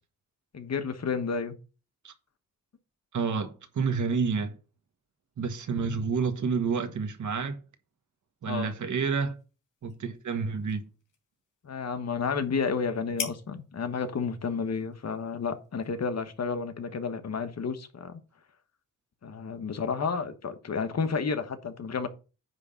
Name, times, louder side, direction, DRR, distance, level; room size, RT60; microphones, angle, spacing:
voice 1, 0.5-1.5 8.4-8.7 11.6-18.2 19.2-22.1, left 5 dB, 55° left, 1.3 m, -31 dB
voice 2, 3.1-4.5 5.4-7.6 8.4-9.3 9.8-10.8, right 5 dB, 65° right, 1.6 m, -29 dB
sound 1, 8.9-16.6, left 6 dB, 75° left, 2.4 m, -46 dB
9.7 x 3.6 x 6.9 m
cardioid pair, 90°, 32 cm